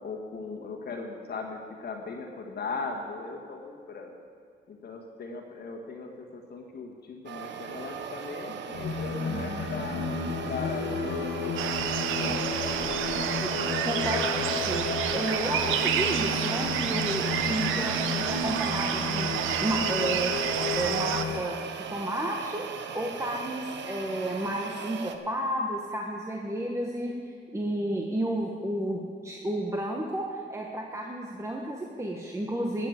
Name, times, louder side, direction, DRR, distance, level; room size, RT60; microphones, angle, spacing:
voice 1, 0.0-4.1 4.7-10.0 10.4-11.6 12.2-12.5 12.7-13.2, left 4 dB, 55° left, 1 dB, 1.7 m, -38 dB
sound 1, 7.3-25.2, right 7 dB, 65° right, 1.0 m, -39 dB
Singing, 8.7-21.4, left 4 dB, 75° left, 1.2 m, -33 dB
sound 2, 11.6-21.2, right 9 dB, 90° right, 0.8 m, -29 dB
voice 2, 13.8-20.4 20.8-22.7 22.9-32.9, right 1 dB, 15° right, 0 dB, 1.3 m, -32 dB
12.5 x 7.6 x 8.1 m, 2.1 s
cardioid pair, 90°, 20 cm